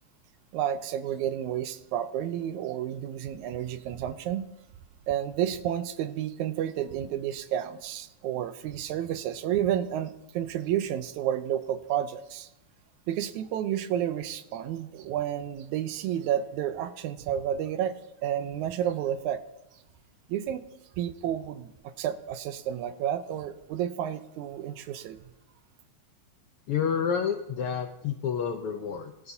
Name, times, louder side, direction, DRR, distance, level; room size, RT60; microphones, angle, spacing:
voice 1, 0.5-4.4 5.1-12.5 13.1-17.9 18.2-19.4 20.3-20.6 21.0-25.2, right 10 dB, 80° right, 11 dB, 2.1 m, -31 dB
voice 2, 26.7-29.3, left 7 dB, 80° left, 5 dB, 1.3 m, -29 dB
20.5 x 13.0 x 2.8 m, 0.87 s
omnidirectional pair, 3.4 m